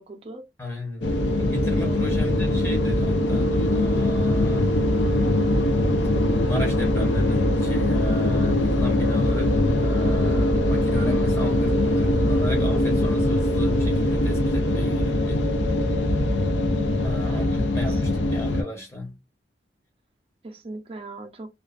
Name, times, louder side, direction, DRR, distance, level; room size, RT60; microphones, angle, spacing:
voice 1, 0.0-0.5 1.6-2.0 16.7-18.0 18.5-18.7 20.4-21.5, right 2 dB, 30° right, 0.5 m, -40 dB
voice 2, 0.6-4.7 5.9-15.5 17.0-19.1, left 1 dB, 15° left, 0.7 m, -35 dB
sound 1, 1.0-18.6, left 1 dB, 85° left, 0.5 m, -22 dB
2.3 x 2.3 x 2.3 m
head